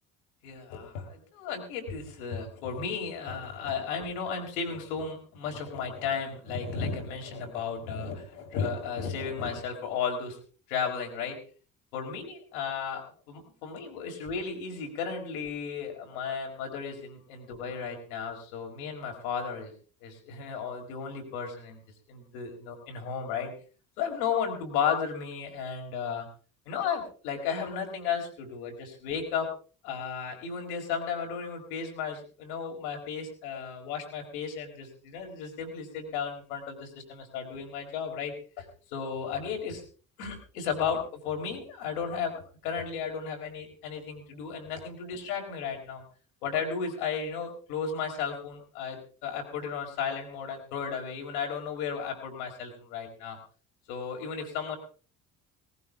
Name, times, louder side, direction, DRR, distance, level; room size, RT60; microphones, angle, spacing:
voice 1, 0.4-10.4 10.7-11.4 11.9-19.7 20.0-21.8 22.1-23.5 24.0-26.3 26.7-29.5 29.8-39.8 40.2-46.0 46.4-53.4 53.9-54.8, left 6 dB, 75° left, 2 dB, 4.8 m, -34 dB
19.0 x 17.5 x 3.6 m, 0.40 s
hypercardioid pair, 50°, 42 cm